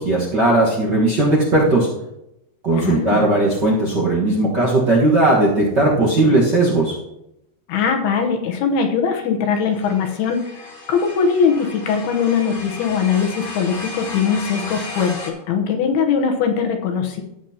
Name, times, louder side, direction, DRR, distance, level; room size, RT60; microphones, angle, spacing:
voice 1, 0.0-1.9 2.6-6.9, right 2 dB, 55° right, -5 dB, 1.2 m, -17 dB
voice 2, 2.7-3.2 7.7-17.2, left 6 dB, 80° left, 3 dB, 3.0 m, -21 dB
sound 1, 9.5-15.3, left 2 dB, 40° left, 2.0 m, -35 dB
15.0 x 8.3 x 2.9 m, 0.85 s
omnidirectional pair, 4.5 m